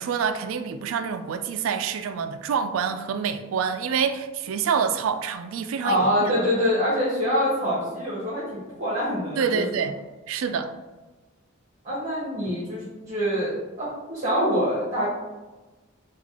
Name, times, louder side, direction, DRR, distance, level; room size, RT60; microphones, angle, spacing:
voice 1, 0.0-6.3 9.4-9.9 10.3-10.7, right 6 dB, 75° right, 0.3 m, -27 dB
voice 2, 5.8-8.4 8.7-9.6 11.8-15.1, equal, 40° right, 0.9 m, -25 dB
3.3 x 2.4 x 3.5 m
head